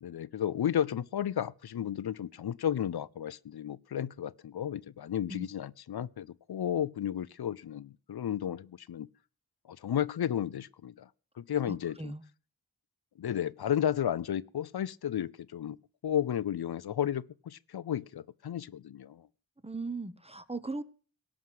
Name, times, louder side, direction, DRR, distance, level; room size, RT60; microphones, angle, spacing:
voice 1, 0.0-9.1 9.7-11.1 11.4-12.1 13.2-15.8 16.0-19.2, left 10 dB, 85° left, 0.5 m, -33 dB
voice 2, 11.7-12.2 19.6-20.8, right 3 dB, 15° right, 1.0 m, -38 dB
17.5 x 6.3 x 7.6 m
wide cardioid pair, 65°, 37 cm